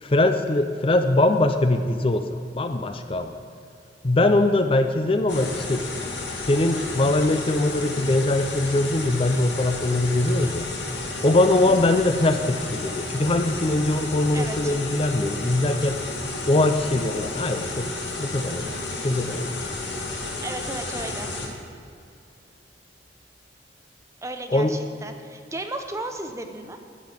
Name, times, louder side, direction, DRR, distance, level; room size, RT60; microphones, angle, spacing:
voice 1, 0.0-3.3 4.0-5.9 6.4-10.7 11.2-16.0 16.5-17.9 18.2-18.7 19.0-19.5 24.5-24.8, left 2 dB, 30° left, 8 dB, 0.5 m, -22 dB
sound 1, 5.3-21.5, left 2 dB, 80° left, 2.0 m, -32 dB
voice 2, 14.3-14.7 20.4-21.3 24.2-26.8, right 2 dB, 15° right, 5 dB, 0.8 m, -34 dB
13.5 x 5.5 x 9.0 m, 2.5 s
head